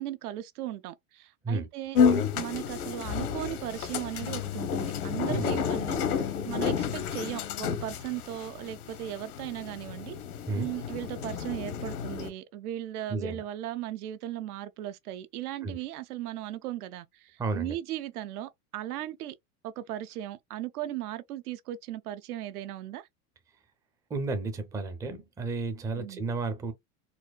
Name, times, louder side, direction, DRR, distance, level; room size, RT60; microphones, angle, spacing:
voice 1, 0.0-2.0 2.3-10.2 10.5-19.3 19.6-23.1 26.0-26.3, right 13 dB, 75° right, 0.6 m, -37 dB
sound 1, 1.9-12.3, left 7 dB, 75° left, 1.0 m, -30 dB
voice 2, 5.3-5.7 10.5-10.7 13.1-13.4 15.6-15.8 17.4-17.8 24.1-26.7, right 3 dB, 10° right, 0.4 m, -32 dB
4.2 x 2.2 x 2.3 m
hypercardioid pair, 115°, 45 cm